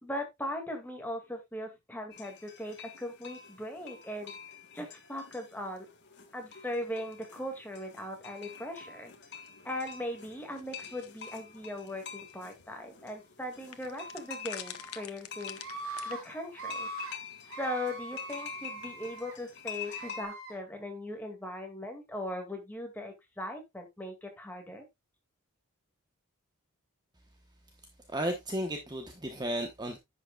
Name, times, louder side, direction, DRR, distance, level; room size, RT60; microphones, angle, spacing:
voice 1, 0.0-4.4 4.7-5.9 6.3-9.1 9.6-15.6 16.1-16.9 17.6-24.9, left 1 dB, 10° left, 2.2 m, -39 dB
sound 1, 2.1-20.3, left 7 dB, 50° left, 1.9 m, -47 dB
sound 2, 10.6-11.3 12.3-12.4 12.6-12.7 13.7-16.1, left 10 dB, 80° left, 1.0 m, -44 dB
Screaming, 14.5-15.0 15.6-16.2 16.5-17.1 17.5-19.4 19.8-20.5, right 3 dB, 65° right, 3.3 m, -42 dB
voice 2, 28.1-30.0, right 1 dB, 20° right, 1.1 m, -34 dB
10.5 x 7.9 x 2.4 m
head